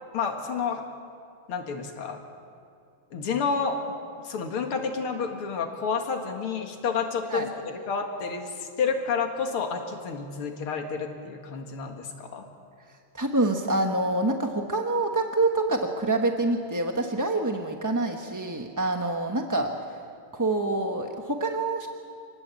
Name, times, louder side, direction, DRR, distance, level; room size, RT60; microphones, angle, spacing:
voice 1, 0.1-0.8 1.5-2.2 3.1-3.8 4.2-7.5 7.9-12.4, left 5 dB, 85° left, 3 dB, 2.8 m, -30 dB
voice 2, 13.1-19.7 20.3-21.9, right 2 dB, 15° right, 3 dB, 0.8 m, -26 dB
27.0 x 19.5 x 8.5 m, 2.3 s
omnidirectional pair, 2.3 m